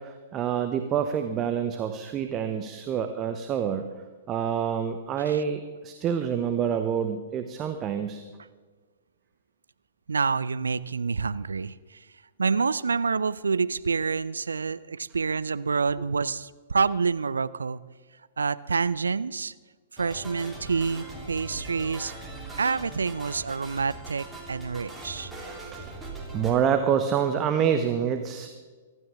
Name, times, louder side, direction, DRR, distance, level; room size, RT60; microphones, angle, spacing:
voice 1, 0.0-3.8 4.3-8.2 25.7-26.0 26.3-28.5, right 8 dB, 25° right, 7 dB, 1.0 m, -27 dB
voice 2, 10.1-12.0 12.4-17.8 18.4-19.5 19.9-22.1 22.6-25.3, right 5 dB, 70° right, 17 dB, 0.5 m, -27 dB
sound 1, 20.0-26.5, right 2 dB, 10° right, 3.2 m, -41 dB
23.5 x 12.5 x 3.6 m, 1.4 s
figure-of-eight pair, 110°, 0 cm